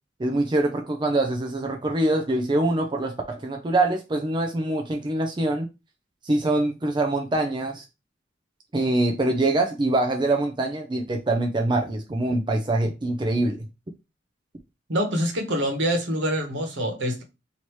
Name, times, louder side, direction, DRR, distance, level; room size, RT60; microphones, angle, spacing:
voice 1, 0.2-5.7 6.2-7.9 8.7-13.7, right 2 dB, 25° right, 0.5 m, -24 dB
voice 2, 14.9-17.2, equal, 70° right, 1.2 m, -25 dB
3.1 x 2.8 x 4.5 m
head